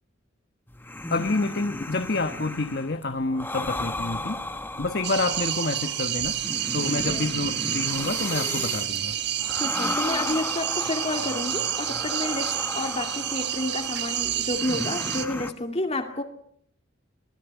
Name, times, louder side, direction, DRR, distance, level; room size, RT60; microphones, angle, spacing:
sound 1, 0.7-15.5, left 2 dB, 10° left, 1.2 m, -35 dB
voice 1, 1.1-4.4 4.8-6.4 6.7-9.2, left 2 dB, 50° left, 8 dB, 1.2 m, -28 dB
sound 2, 5.0-15.3, right 11 dB, 55° right, 1.4 m, -29 dB
voice 2, 6.8-7.2 9.5-16.2, left 2 dB, 30° left, 5 dB, 2.4 m, -30 dB
24.0 x 17.0 x 8.2 m, 0.64 s
head